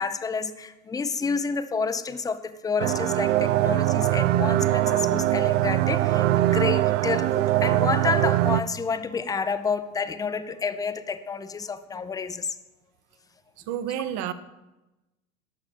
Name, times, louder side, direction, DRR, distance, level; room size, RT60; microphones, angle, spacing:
voice 1, 0.0-12.5, left 5 dB, 10° left, 11 dB, 0.6 m, -29 dB
sound 1, 2.8-8.6, right 15 dB, 65° right, 0.6 m, -22 dB
voice 2, 13.7-14.3, right 10 dB, 45° right, 12 dB, 1.0 m, -29 dB
12.5 x 6.1 x 6.9 m, 1.0 s
figure-of-eight pair, 85°, 41 cm